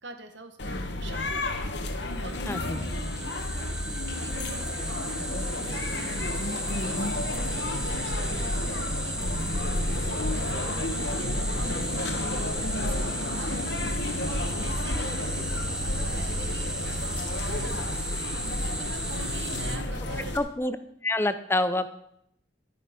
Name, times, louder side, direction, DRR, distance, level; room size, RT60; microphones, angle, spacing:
voice 1, 0.0-12.1 12.8-18.1 18.4-20.4, right 2 dB, 75° right, 7 dB, 1.6 m, -45 dB
sound 1, 0.6-20.4, left 1 dB, 70° left, 1.3 m, -31 dB
sound 2, 2.0-19.8, right 1 dB, 5° right, 1.2 m, -35 dB
voice 2, 2.5-2.8 20.3-20.8 21.0-21.9, left 2 dB, 15° left, 11 dB, 0.6 m, -27 dB
Telephone, 7.9-11.9 13.0-18.8, right 3 dB, 20° right, 0.9 m, -42 dB
12.0 x 9.4 x 5.3 m, 0.75 s
head